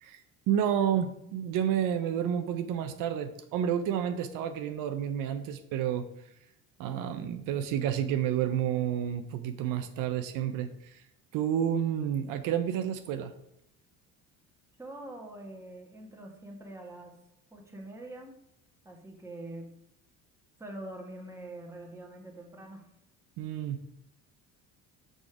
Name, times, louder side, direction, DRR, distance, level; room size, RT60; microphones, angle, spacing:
voice 1, 0.5-6.1 6.8-11.0 11.3-13.3 23.4-23.8, right 9 dB, 70° right, 8 dB, 0.7 m, -30 dB
voice 2, 14.8-17.1 17.5-18.3 18.8-19.7 20.6-22.9, right 1 dB, 10° right, 1 dB, 1.4 m, -44 dB
6.2 x 5.2 x 4.9 m, 0.80 s
cardioid pair, 120°, 34 cm